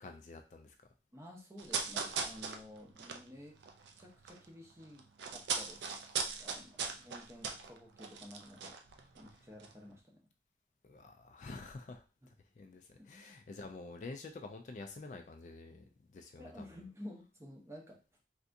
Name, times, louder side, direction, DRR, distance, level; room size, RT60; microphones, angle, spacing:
voice 1, 0.0-0.8 10.8-12.0 12.6-16.6, left 3 dB, 45° left, 5 dB, 0.3 m, -48 dB
voice 2, 1.1-3.6 4.0-8.8 9.2-10.2 12.2-12.3 13.0-13.1 16.4-18.0, left 1 dB, 15° right, 0 dB, 0.6 m, -52 dB
sound 1, 1.6-4.4 4.7-9.3 9.6-9.7, right 5 dB, 85° right, 0.4 m, -39 dB
3.3 x 2.7 x 2.5 m, 0.33 s
head